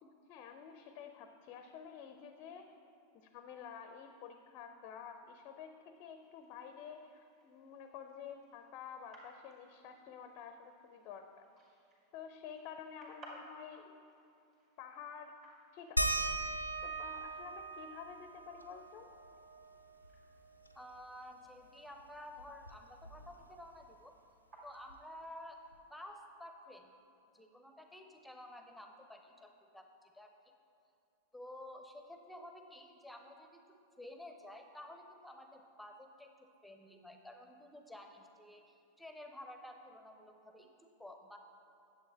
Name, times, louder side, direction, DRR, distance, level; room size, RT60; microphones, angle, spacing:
voice 1, 0.0-2.7 3.1-11.4 12.1-13.9 14.8-15.4 15.7-16.3 16.8-19.1, left 7 dB, 40° left, 7 dB, 0.5 m, -50 dB
sound 1, 6.2-25.7, right 1 dB, 35° right, 2.2 m, -63 dB
sound 2, 16.0-21.1 21.4-21.5 21.9-23.6 24.9-25.0 25.7-25.8, right 1 dB, 90° left, 0.5 m, -40 dB
voice 2, 20.7-24.1 24.6-25.6 25.9-26.9 27.3-29.9 30.1-30.3 31.3-33.6 34.0-41.4, left 1 dB, ahead, 4 dB, 0.8 m, -52 dB
9.5 x 7.5 x 4.2 m, 2.6 s
figure-of-eight pair, 90°, 0 cm